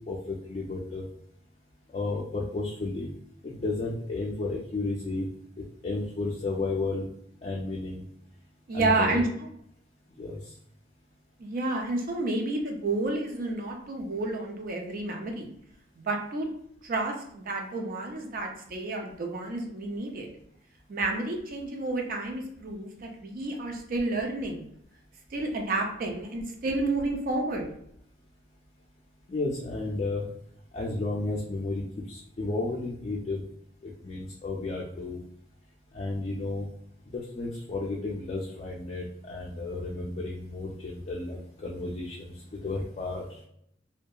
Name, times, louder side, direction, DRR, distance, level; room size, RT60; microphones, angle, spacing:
voice 1, 0.1-1.0 1.9-3.1 3.4-5.3 5.8-7.1 7.4-8.0 8.7-9.2 10.2-10.4 29.3-30.2 30.7-33.4 34.0-35.2 35.9-36.7 37.1-42.3 42.6-43.2, left 3 dB, 35° left, -3 dB, 0.4 m, -32 dB
voice 2, 8.7-9.5 11.4-15.5 16.0-16.5 16.8-20.3 20.9-24.7 25.3-27.7, right 2 dB, 50° right, 2 dB, 0.4 m, -30 dB
2.7 x 2.2 x 2.3 m, 0.71 s
head